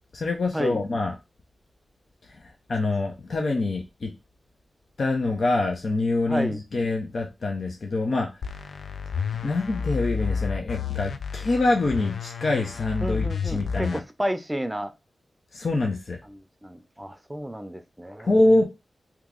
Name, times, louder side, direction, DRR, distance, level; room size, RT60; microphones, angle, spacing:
voice 1, 0.1-1.1 2.3-4.1 5.0-8.3 9.4-14.0 15.5-16.2 18.2-18.6, left 2 dB, 65° left, 1 dB, 0.7 m, -25 dB
voice 2, 6.3-6.6 13.0-14.9 16.3-18.3, equal, 15° right, 9 dB, 0.6 m, -31 dB
sound 1, 8.4-14.0, left 6 dB, 80° left, 0.4 m, -31 dB
3.0 x 2.4 x 3.7 m, 0.25 s
cardioid pair, 50°, 0 cm